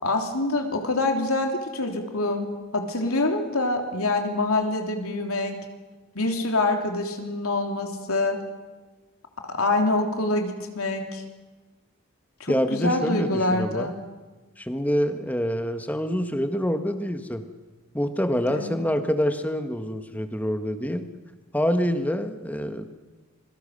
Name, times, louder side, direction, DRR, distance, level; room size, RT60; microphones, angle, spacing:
voice 1, 0.0-5.6 6.1-8.4 9.5-11.2 12.4-13.9 18.5-18.8, left 2 dB, 85° left, 4 dB, 3.4 m, -25 dB
voice 2, 12.5-13.9 14.6-17.4 17.9-21.1 21.5-22.9, equal, 5° left, 8 dB, 1.4 m, -26 dB
27.0 x 22.5 x 6.6 m, 1.2 s
head